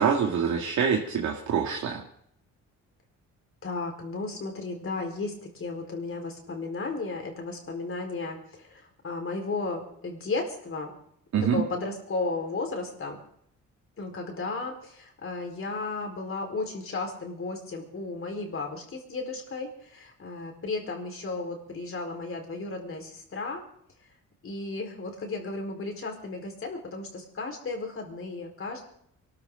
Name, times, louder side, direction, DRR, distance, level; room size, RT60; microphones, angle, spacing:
voice 1, 0.0-2.0 11.3-11.6, right 7 dB, 65° right, 0 dB, 2.3 m, -25 dB
voice 2, 3.6-10.9 11.3-13.2 14.0-23.6 24.4-28.8, left 3 dB, 45° left, 3 dB, 4.7 m, -34 dB
23.5 x 13.5 x 3.9 m, 0.67 s
cardioid pair, 90°, 30 cm